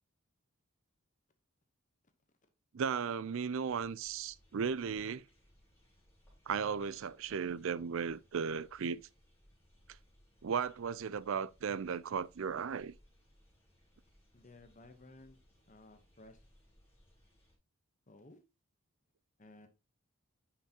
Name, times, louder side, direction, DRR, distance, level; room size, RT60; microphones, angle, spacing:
voice 1, 2.7-5.2 6.5-9.0 10.4-12.9, right 6 dB, 65° right, 0.4 m, -36 dB
sound 1, 3.6-17.5, equal, 10° left, 3.7 m, -67 dB
voice 2, 14.3-15.4 15.7-16.4 18.1-18.4 19.4-19.7, left 2 dB, 35° left, 0.9 m, -56 dB
10.0 x 5.9 x 2.8 m
head